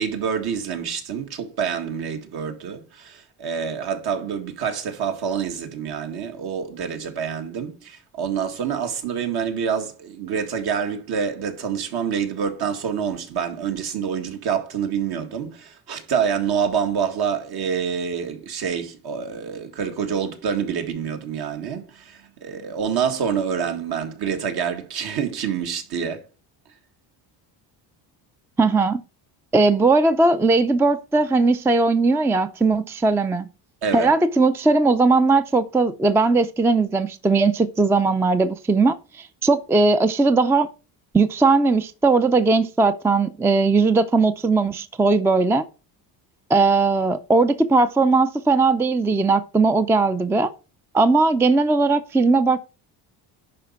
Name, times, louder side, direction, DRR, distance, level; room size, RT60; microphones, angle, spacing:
voice 1, 0.0-26.2 33.8-34.1, right 7 dB, 60° right, 2.1 m, -27 dB
voice 2, 28.6-29.0 29.5-33.5 33.9-40.7 41.1-45.6 46.5-50.5 50.9-52.6, right 3 dB, 5° right, 0.4 m, -19 dB
11.0 x 4.3 x 5.8 m
cardioid pair, 145°, 43 cm